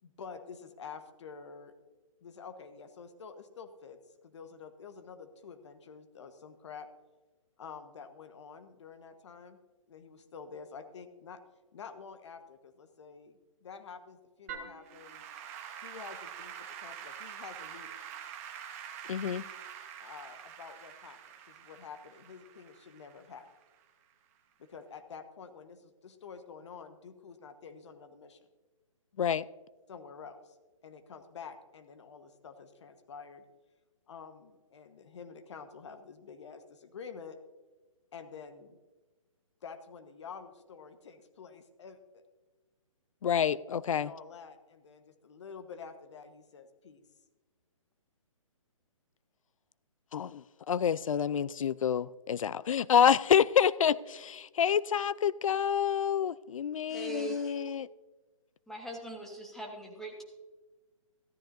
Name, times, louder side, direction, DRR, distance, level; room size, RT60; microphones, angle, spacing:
voice 1, 0.0-1.7 2.2-6.9 7.6-9.6 9.9-11.4 11.7-15.2 15.8-18.0 20.0-21.2 21.5-23.5 24.6-28.4 29.9-30.6 30.8-33.4 34.1-37.4 38.1-38.8 39.6-42.2 43.9-47.0, left 6 dB, 55° left, 8 dB, 1.3 m, -48 dB
Applause / Keyboard (musical), 14.5-23.8, right 8 dB, 25° right, 1.0 m, -46 dB
voice 2, 19.1-19.4 29.2-29.4 43.2-44.1 50.1-57.9, left 8 dB, 70° left, 20 dB, 0.4 m, -28 dB
voice 3, 56.9-57.6 58.7-60.2, right 1 dB, ahead, 0 dB, 1.2 m, -41 dB
14.5 x 13.0 x 2.6 m, 1.2 s
hypercardioid pair, 155°, 18 cm